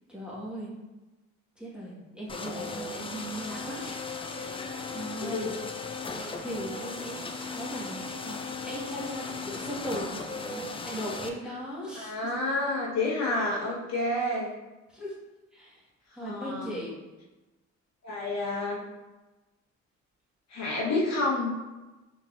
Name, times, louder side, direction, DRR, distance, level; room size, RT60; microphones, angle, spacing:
voice 1, 0.1-0.7 1.6-5.5 6.1-7.2 7.5-12.3 14.9-15.2 15.5-15.8 16.1-16.9, equal, 5° right, -7 dB, 1.5 m, -38 dB
sound 1, 2.3-11.3, left 4 dB, 20° left, 0.3 m, -37 dB
voice 2, 5.2-5.5 11.9-14.5 16.2-16.7 18.0-18.8 20.5-21.5, left 2 dB, 60° left, -4 dB, 1.2 m, -29 dB
3.9 x 3.7 x 2.5 m, 1.1 s
cardioid pair, 90°, 30 cm